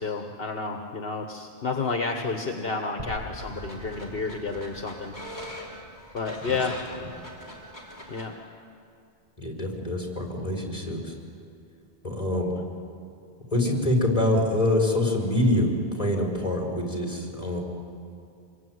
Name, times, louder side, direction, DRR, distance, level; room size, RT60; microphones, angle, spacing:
voice 1, 0.0-5.1 6.1-6.8 8.1-8.4, left 4 dB, 70° left, 4 dB, 1.5 m, -30 dB
sound 1, 3.0-7.0, equal, 40° right, 5.1 m, -43 dB
sound 2, 3.1-8.3, equal, 20° left, 4.6 m, -42 dB
voice 2, 9.4-11.1 12.0-12.5 13.5-17.6, left 1 dB, 35° left, 0 dB, 5.2 m, -25 dB
27.0 x 22.5 x 9.5 m, 2.5 s
omnidirectional pair, 1.0 m